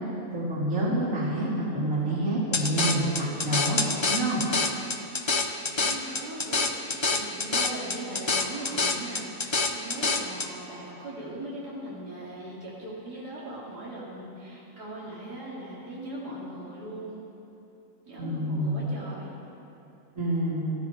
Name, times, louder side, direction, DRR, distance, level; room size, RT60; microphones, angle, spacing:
voice 1, 0.3-3.8 4.1-4.4 18.2-18.9 20.2-20.7, right 1 dB, 55° right, -7 dB, 3.6 m, -27 dB
sound 1, 2.5-10.5, left 3 dB, 45° left, 0.4 m, -27 dB
voice 2, 5.6-17.2 18.1-19.4, right 1 dB, 80° right, -7 dB, 3.4 m, -39 dB
18.5 x 14.5 x 4.7 m, 2.9 s
omnidirectional pair, 1.7 m